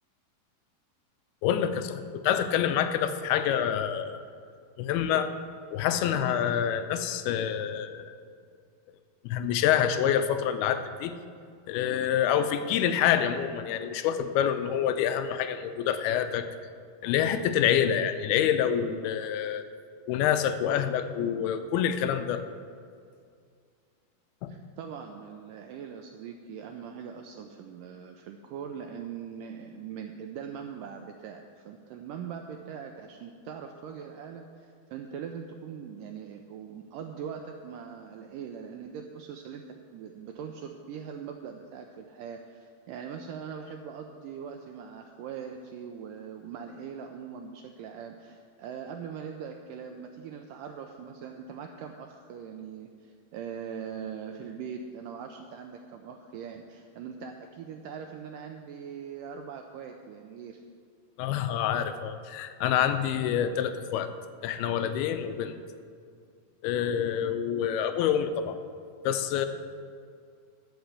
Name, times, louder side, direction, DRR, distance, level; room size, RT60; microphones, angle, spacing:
voice 1, 1.4-4.3 4.8-5.3 5.7-8.2 9.2-11.1 11.7-16.4 17.0-19.7 20.1-22.4 24.4-24.5 61.2-64.1 64.4-65.5 66.6-68.6 69.0-69.5, left 9 dB, 90° left, 9 dB, 2.6 m, -27 dB
voice 2, 24.5-39.6 39.9-60.6, right 7 dB, 85° right, 4 dB, 1.9 m, -41 dB
13.0 x 5.8 x 8.2 m, 2.2 s
omnidirectional pair, 4.5 m